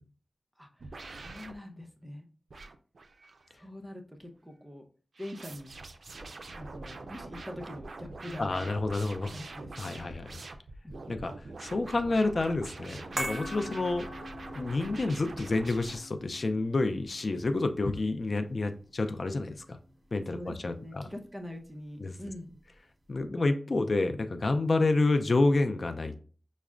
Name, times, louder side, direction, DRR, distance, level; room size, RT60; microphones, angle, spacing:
voice 1, 0.6-2.3 3.5-4.8 5.2-5.7 6.5-8.5 9.3-10.1 10.8-11.1 20.3-22.6, left 1 dB, 10° right, 3 dB, 0.7 m, -44 dB
sound 1, 0.8-1.6 2.5-3.5 5.2-16.0, right 3 dB, 80° right, 0.3 m, -44 dB
voice 2, 8.4-9.3 9.8-10.4 11.1-11.3 11.6-14.1 14.6-19.8 20.1-21.1 22.0-22.2 23.1-26.2, left 2 dB, 60° left, 6 dB, 0.4 m, -29 dB
sound 2, 13.2-19.6 19.8-20.0, equal, 45° right, 0.7 m, -42 dB
5.7 x 2.1 x 2.4 m, 0.40 s
wide cardioid pair, 55°, 0 cm